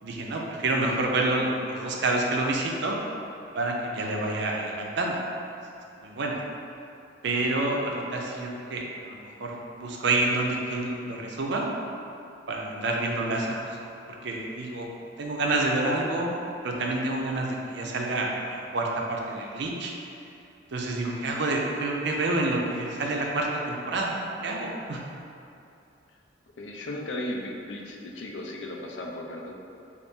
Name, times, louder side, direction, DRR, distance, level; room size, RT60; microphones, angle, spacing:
voice 1, 0.0-3.0 3.5-5.2 6.0-6.4 7.2-11.7 12.5-13.6 14.2-14.9 15.2-16.4 16.6-19.9 20.7-25.0, right 2 dB, 65° right, 0 dB, 0.5 m, -28 dB
voice 2, 26.6-29.5, left 1 dB, 70° left, 0 dB, 0.5 m, -36 dB
4.0 x 2.5 x 3.5 m, 2.7 s
head